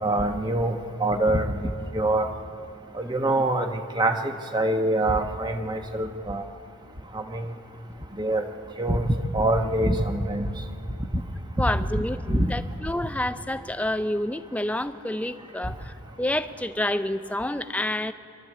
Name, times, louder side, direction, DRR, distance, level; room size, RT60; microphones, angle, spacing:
voice 1, 0.0-1.6 1.9-2.3 2.9-6.4 7.1-7.5 8.2-8.4 8.8-10.5 12.0-12.5, right 1 dB, 20° right, 5 dB, 1.0 m, -25 dB
voice 2, 11.6-18.1, left 1 dB, 5° left, 11 dB, 0.5 m, -29 dB
26.5 x 12.5 x 8.3 m, 2.5 s
head